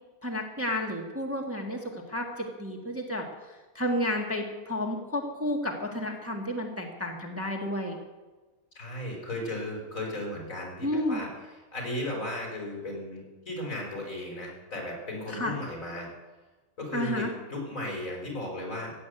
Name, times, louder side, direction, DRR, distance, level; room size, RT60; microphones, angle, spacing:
voice 1, 0.2-1.8 2.1-3.2 3.7-8.0 10.8-11.2 15.3-15.5 16.9-17.3, left 1 dB, 10° right, 1 dB, 1.5 m, -31 dB
voice 2, 8.7-16.1 16.8-18.9, left 1 dB, 65° left, -1 dB, 5.1 m, -35 dB
16.0 x 8.6 x 8.1 m, 1.2 s
omnidirectional pair, 1.5 m